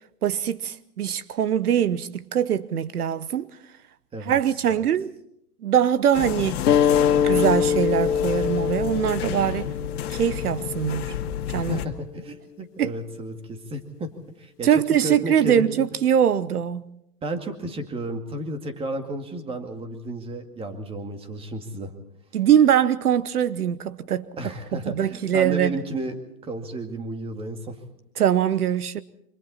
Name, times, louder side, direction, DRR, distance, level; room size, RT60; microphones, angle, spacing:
voice 1, 0.2-3.5 4.2-5.1 5.6-6.6 7.2-9.7 10.1-11.1 11.5-11.8 12.8-12.9 14.6-16.8 22.3-24.3 24.7-25.7 28.2-29.0, right 9 dB, 70° right, 1.1 m, -22 dB
voice 2, 4.1-4.7 11.5-14.1 14.4-14.7 15.0-15.9 17.2-21.9 24.4-26.2 26.4-27.8, right 1 dB, 10° right, 2.2 m, -33 dB
sound 1, 6.1-11.9, left 9 dB, 40° left, 2.3 m, -31 dB
sound 2, 6.7-11.8, left 8 dB, 90° left, 0.9 m, -24 dB
27.5 x 26.0 x 4.3 m
hypercardioid pair, 140°, 46 cm